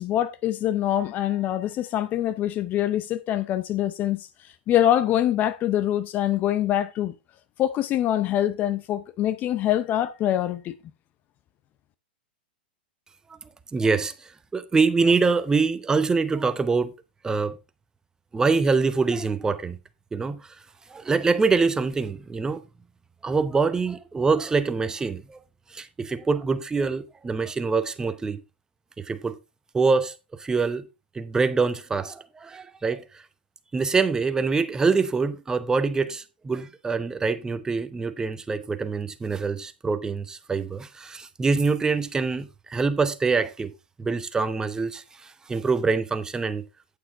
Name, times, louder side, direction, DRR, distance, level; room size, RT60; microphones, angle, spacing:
voice 1, 0.0-4.3 4.7-7.1 7.6-10.7, left 12 dB, 30° left, 0.6 m, -24 dB
voice 2, 13.7-16.9 17.2-17.6 18.3-19.8 20.1-20.6 20.9-22.6 23.2-25.4 25.7-28.4 29.0-29.4 29.7-30.9 31.1-33.2 33.7-43.7 44.0-46.6, right 4 dB, 10° right, 0.8 m, -25 dB
8.8 x 7.7 x 3.6 m
hypercardioid pair, 120°, 5 cm